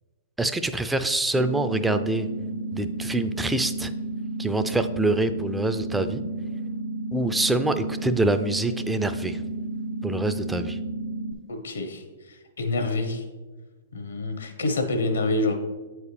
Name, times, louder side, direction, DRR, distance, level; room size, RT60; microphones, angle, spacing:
voice 1, 0.4-2.3 2.7-3.9 4.4-6.2 7.1-9.4 10.0-10.8, right 2 dB, 5° right, 10 dB, 0.3 m, -25 dB
sound 1, 1.3-11.3, right 2 dB, 50° right, 0.6 m, -32 dB
voice 2, 11.5-13.2 13.9-15.5, left 2 dB, 80° left, 5 dB, 1.0 m, -27 dB
8.0 x 4.7 x 3.3 m, 1.3 s
hypercardioid pair, 115°, 0 cm